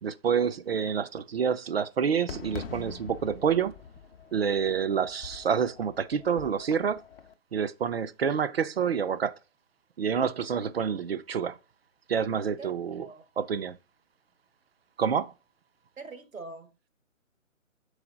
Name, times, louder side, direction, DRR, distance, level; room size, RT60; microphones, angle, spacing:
voice 1, 0.0-3.7 4.3-7.0 7.5-9.3 10.0-11.6 12.1-13.1 13.4-13.8 15.0-15.3, right 7 dB, 50° right, 0.6 m, -28 dB
Fireworks, 2.3-7.3, left 7 dB, 45° left, 0.7 m, -44 dB
voice 2, 16.0-16.9, right 3 dB, 85° right, 1.7 m, -43 dB
6.8 x 4.9 x 3.8 m
figure-of-eight pair, 150°, 40 cm